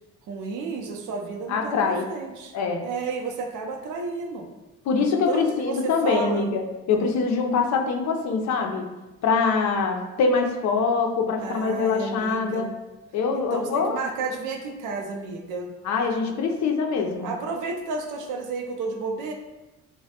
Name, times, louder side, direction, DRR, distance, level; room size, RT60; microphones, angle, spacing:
voice 1, 0.3-2.5 2.8-4.5 5.3-6.5 11.4-12.8 13.3-15.7 17.2-19.3, right 4 dB, 85° right, 3 dB, 0.5 m, -32 dB
voice 2, 1.5-2.1 2.5-2.8 4.9-8.8 9.2-12.7 13.1-14.0 15.8-17.3, left 4 dB, 65° left, 3 dB, 0.5 m, -24 dB
3.1 x 2.1 x 2.8 m, 1.0 s
cardioid pair, 90°, 30 cm